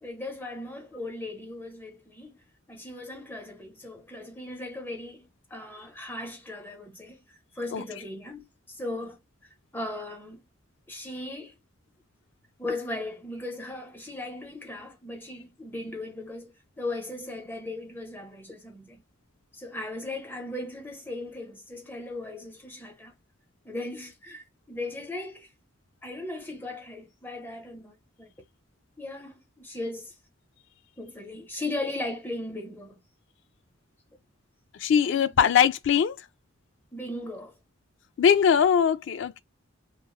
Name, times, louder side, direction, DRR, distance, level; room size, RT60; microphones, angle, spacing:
voice 1, 0.0-2.4 2.7-7.2 7.5-9.2 9.7-10.4 10.9-11.5 12.6-19.0 19.5-23.1 23.6-25.5 26.0-28.3 29.0-30.1 31.0-33.0 35.0-35.3 36.9-37.5, left 2 dB, 10° left, 0.9 m, -37 dB
voice 2, 34.8-36.2 38.2-39.4, left 7 dB, 65° left, 0.3 m, -21 dB
3.0 x 2.3 x 2.3 m
head